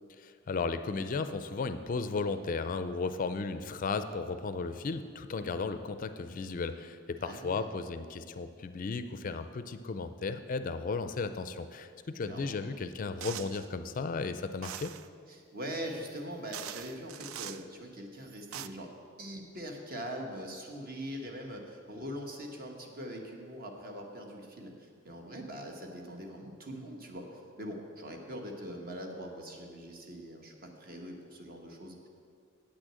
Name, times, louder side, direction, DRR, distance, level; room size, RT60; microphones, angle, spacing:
voice 1, 0.5-14.9, left 4 dB, 40° left, 10 dB, 0.4 m, -35 dB
voice 2, 7.2-7.7 12.3-12.6 15.3-18.9 19.2-32.0, equal, 45° right, 2 dB, 1.2 m, -42 dB
sound 1, 13.2-13.7 14.6-15.1 16.1-16.2 16.5-17.6 18.3-18.7, right 11 dB, 80° right, 0.4 m, -42 dB
8.5 x 6.3 x 7.6 m, 2.2 s
head